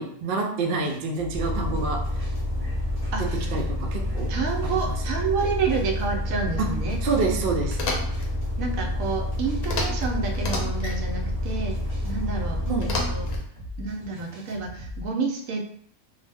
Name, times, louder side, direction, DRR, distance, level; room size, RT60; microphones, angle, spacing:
voice 1, 0.0-2.3 3.2-4.3 4.6-5.0 6.6-6.7 7.0-7.8 12.7-12.9, right 4 dB, 90° right, 1 dB, 0.4 m, -28 dB
sound 1, 0.8-15.1, left 1 dB, 25° right, 1.0 m, -41 dB
Bus, 1.3-13.4, left 1 dB, 30° left, 0.4 m, -28 dB
voice 2, 3.1-3.5 4.3-7.0 8.6-11.8 12.0-13.2 13.8-15.6, right 5 dB, 75° right, 1 dB, 1.0 m, -29 dB
sound 2, 7.7-8.3 9.6-10.1 10.3-11.0 12.8-13.4, left 2 dB, 75° left, 1.1 m, -30 dB
2.6 x 2.0 x 3.3 m, 0.63 s
omnidirectional pair, 1.5 m